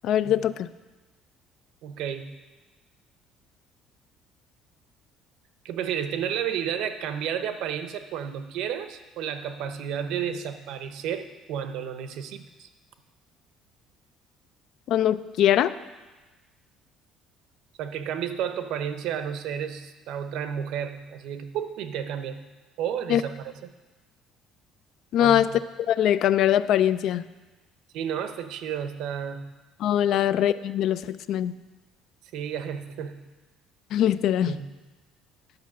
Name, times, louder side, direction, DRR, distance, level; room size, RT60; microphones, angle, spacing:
voice 1, 0.0-0.7 14.9-15.7 23.1-23.2 25.1-25.5 25.9-27.2 29.8-31.5 33.9-34.5, left 11 dB, 55° left, 15 dB, 0.3 m, -22 dB
voice 2, 1.8-2.3 5.6-12.7 17.8-22.4 22.8-23.7 25.2-25.6 27.9-29.5 32.3-33.2 34.4-34.7, right 8 dB, 70° right, 9 dB, 0.8 m, -32 dB
10.5 x 5.6 x 7.3 m, 1.2 s
cardioid pair, 155°, 0 cm